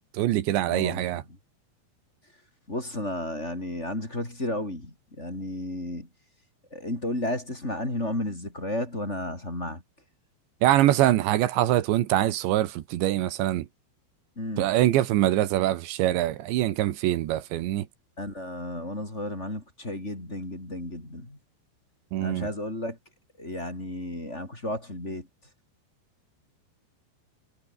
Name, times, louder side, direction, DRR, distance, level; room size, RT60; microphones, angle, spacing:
voice 1, 0.1-1.2 10.6-13.7 14.6-17.9 22.1-22.5, right 14 dB, 85° right, 3.7 m, -24 dB
voice 2, 0.7-1.2 2.7-6.1 6.7-9.8 14.4-14.7 18.2-21.4 22.2-23.0 23.4-25.3, left 1 dB, 15° left, 5.1 m, -33 dB
omnidirectional pair, 5.0 m